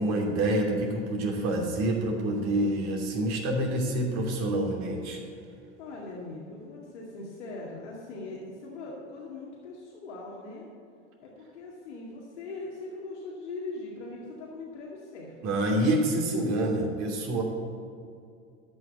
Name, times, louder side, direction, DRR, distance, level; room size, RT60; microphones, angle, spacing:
voice 1, 0.0-5.2 15.4-17.4, right 1 dB, 50° right, 0 dB, 2.9 m, -27 dB
voice 2, 5.8-10.7 11.2-15.4, left 3 dB, 75° left, -4 dB, 2.2 m, -41 dB
13.0 x 5.8 x 8.2 m, 2.4 s
hypercardioid pair, 85°, 36 cm